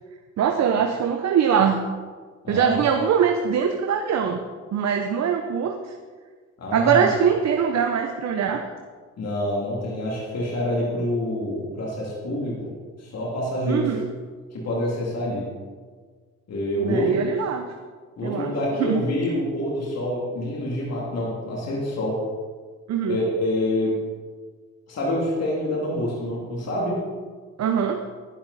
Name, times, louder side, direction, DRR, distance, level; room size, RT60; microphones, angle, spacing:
voice 1, 0.4-1.8 2.5-4.4 4.7-5.9 6.7-8.6 13.7-14.1 16.8-17.7 18.2-18.5 18.8-19.0 22.9-23.2 27.6-28.0, right 7 dB, 60° right, 5 dB, 0.9 m, -22 dB
voice 2, 2.4-2.9 6.6-7.1 9.2-12.7 13.0-13.9 14.5-15.5 16.5-17.2 18.2-22.2 23.1-23.9 24.9-27.0, left 1 dB, 55° left, -4 dB, 3.1 m, -26 dB
11.0 x 11.0 x 4.2 m, 1.5 s
cardioid pair, 90°, 30 cm